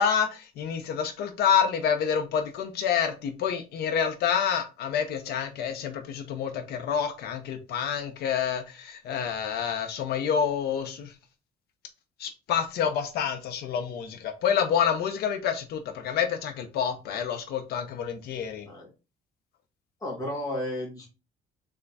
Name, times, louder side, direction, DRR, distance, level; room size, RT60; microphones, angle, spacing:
voice 1, 0.0-11.1 12.2-18.7, left 7 dB, 75° left, 6 dB, 0.8 m, -28 dB
voice 2, 20.0-21.1, left 1 dB, 20° left, -4 dB, 1.9 m, -33 dB
3.7 x 3.4 x 4.0 m, 0.29 s
cardioid pair, 110°, 17 cm